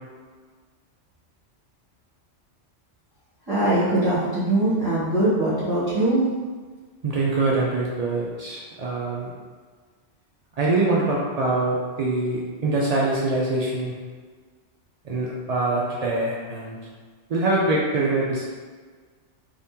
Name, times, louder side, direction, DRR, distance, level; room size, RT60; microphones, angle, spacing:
voice 1, 3.5-6.2, right 1 dB, 20° right, -13 dB, 1.2 m, -21 dB
voice 2, 7.0-9.3 10.6-13.9 15.0-16.8 17.3-18.5, right 2 dB, 75° right, -5 dB, 0.3 m, -24 dB
3.5 x 2.8 x 2.7 m, 1.5 s
omnidirectional pair, 1.2 m